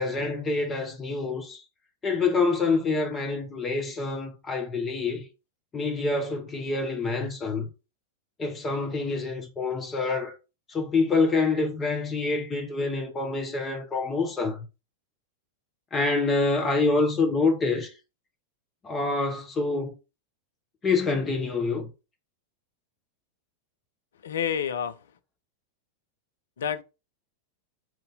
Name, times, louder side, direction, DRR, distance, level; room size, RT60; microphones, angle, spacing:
voice 1, 0.0-1.6 2.0-5.2 5.7-7.7 8.4-10.3 10.7-14.6 15.9-17.9 18.8-19.9 20.8-21.9, left 3 dB, 20° left, 0.8 m, -26 dB
voice 2, 24.2-24.9 26.6-26.8, left 8 dB, 65° left, 0.4 m, -28 dB
4.4 x 2.6 x 3.9 m
figure-of-eight pair, 90°, 0 cm